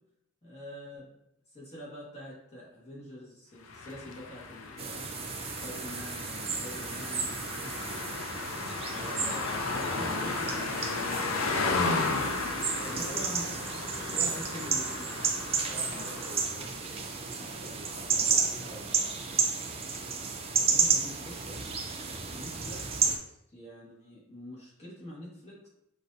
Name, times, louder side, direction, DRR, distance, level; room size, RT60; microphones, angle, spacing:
voice 1, 0.4-1.1 1.5-8.0 8.9-11.7 12.9-13.5 13.9-15.2 15.9-16.0 20.5-25.7, left 1 dB, 30° left, -7 dB, 1.4 m, -45 dB
sound 1, 3.7-16.7, left 3 dB, 75° left, 0.5 m, -34 dB
sound 2, 4.8-23.2, right 5 dB, 30° right, 0.4 m, -32 dB
voice 2, 8.9-9.2 12.8-13.3 14.1-14.8 15.6-19.2, equal, 10° left, -11 dB, 1.2 m, -47 dB
6.1 x 2.6 x 2.6 m, 0.80 s
head